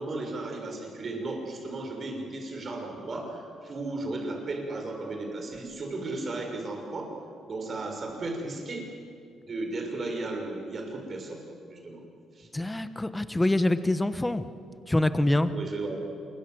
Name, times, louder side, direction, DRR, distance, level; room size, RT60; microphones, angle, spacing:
voice 1, 0.0-7.1 7.5-8.9 9.4-11.4 11.7-12.0 12.4-12.5 15.5-16.0, right 2 dB, 40° right, 2 dB, 6.3 m, -35 dB
voice 2, 12.5-14.5 14.9-15.5, left 1 dB, 10° left, 11 dB, 1.3 m, -25 dB
26.0 x 23.5 x 8.0 m, 2.4 s
cardioid pair, 90°, 0 cm